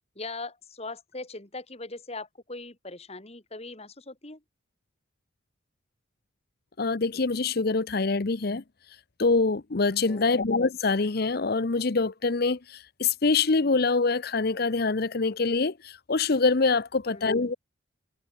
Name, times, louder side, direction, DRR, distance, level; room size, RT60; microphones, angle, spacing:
voice 1, 0.2-4.4 10.0-10.4 17.1-17.5, left 3 dB, 30° left, 2.8 m, -40 dB
voice 2, 6.8-8.6 9.2-17.5, left 3 dB, 50° left, 0.8 m, -25 dB
head